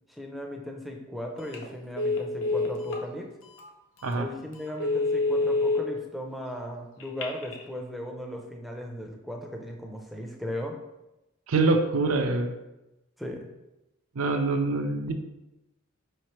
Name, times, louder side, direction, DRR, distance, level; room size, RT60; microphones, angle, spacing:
voice 1, 0.1-3.3 4.2-10.8 13.2-13.5, equal, ahead, 1 dB, 0.4 m, -37 dB
Telephone, 1.4-1.6 2.0-3.0 3.6-3.7 4.1-4.2 4.7-5.8 7.0-7.6, left 3 dB, 65° left, 0.7 m, -26 dB
voice 2, 11.5-12.5 14.2-15.1, right 3 dB, 85° right, 6 dB, 0.5 m, -25 dB
4.8 x 3.1 x 3.0 m, 0.96 s
head